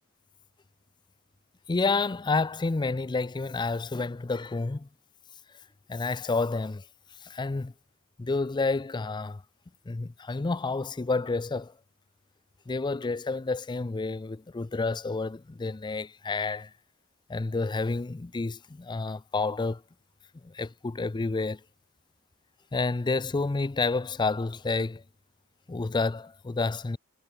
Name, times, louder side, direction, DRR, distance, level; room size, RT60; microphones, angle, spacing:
voice 1, 1.7-4.9 5.9-6.8 7.2-7.7 8.2-9.4 9.9-11.7 12.7-16.7 17.3-19.8 20.4-21.6 22.7-25.0 25.7-27.0, left 3 dB, 20° left, 0.4 m, -29 dB
head